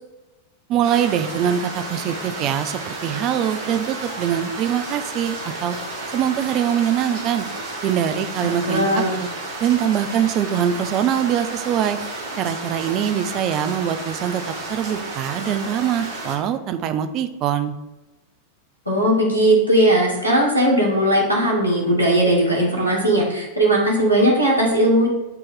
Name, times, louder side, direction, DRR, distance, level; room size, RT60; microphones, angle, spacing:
voice 1, 0.7-5.8 6.1-7.5 7.8-9.3 9.6-12.0 12.4-14.4 14.7-17.8, right 9 dB, 35° right, 10 dB, 0.4 m, -23 dB
sound 1, 0.8-16.4, right 2 dB, 55° right, 1.3 m, -32 dB
voice 2, 8.4-9.1 18.8-25.1, right 1 dB, 90° left, -4 dB, 1.5 m, -18 dB
8.8 x 3.0 x 3.7 m, 1.0 s
figure-of-eight pair, 90°, 0 cm